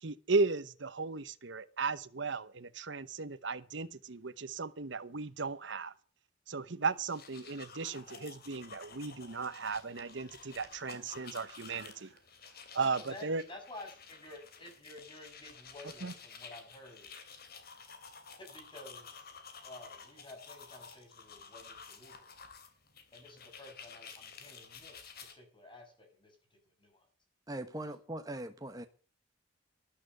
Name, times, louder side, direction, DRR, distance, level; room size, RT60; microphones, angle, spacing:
voice 1, 0.0-5.9 6.5-12.2 12.7-13.4 16.0-16.1, right 4 dB, 65° right, 1.0 m, -35 dB
sound 1, 6.9-25.3, left 5 dB, 55° left, 3.0 m, -52 dB
voice 2, 13.1-17.1 18.4-19.1 19.6-22.3 23.1-26.3 26.8-27.1, left 2 dB, 25° left, 6.7 m, -52 dB
voice 3, 27.5-28.9, right 1 dB, 20° right, 1.1 m, -40 dB
13.0 x 11.5 x 6.7 m
head